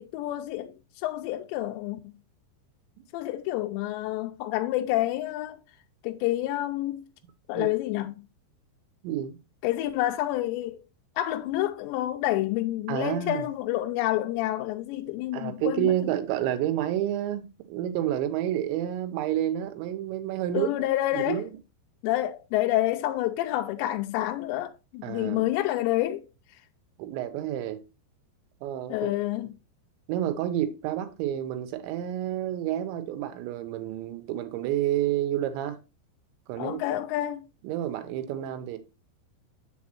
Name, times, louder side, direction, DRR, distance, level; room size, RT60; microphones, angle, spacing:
voice 1, 0.0-2.2 3.1-5.6 6.0-7.0 7.5-8.3 9.6-10.8 11.2-15.9 20.5-21.5 22.0-26.2 28.9-29.5 36.6-37.4, left 15 dB, 85° left, 2.8 m, -28 dB
voice 2, 9.0-9.4 12.9-13.5 15.3-20.7 21.1-21.6 25.0-25.4 27.0-27.8 28.6-29.1 30.1-35.8 36.5-36.8 37.6-38.8, right 11 dB, 85° right, 3.2 m, -29 dB
7.3 x 6.9 x 2.9 m
omnidirectional pair, 5.1 m